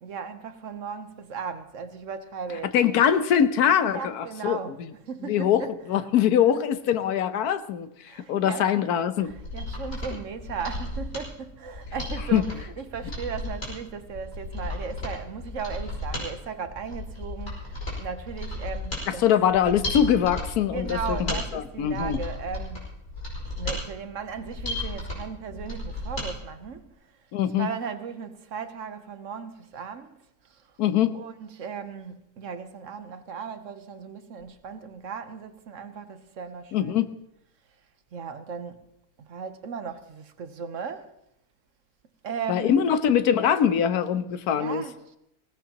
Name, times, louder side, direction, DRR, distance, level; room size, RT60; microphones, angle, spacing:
voice 1, 0.0-3.0 3.8-4.7 5.1-5.8 6.5-6.6 8.1-8.7 9.2-19.4 20.6-22.9 23.5-26.9 27.6-30.2 30.5-30.6 31.1-37.1 38.1-38.8 39.2-41.1 42.2-42.8 44.5-45.2, right 6 dB, 60° right, 1.2 m, -36 dB
voice 2, 2.7-4.6 5.3-7.9 8.3-9.3 12.3-12.4 19.1-22.2 27.3-27.7 30.8-31.1 36.7-37.1 42.5-44.8, left 9 dB, 85° left, 1.3 m, -23 dB
Mechanisms, 9.3-26.3 26.6-26.7, left 2 dB, 50° left, 5.5 m, -34 dB
20.0 x 17.0 x 2.9 m
omnidirectional pair, 1.6 m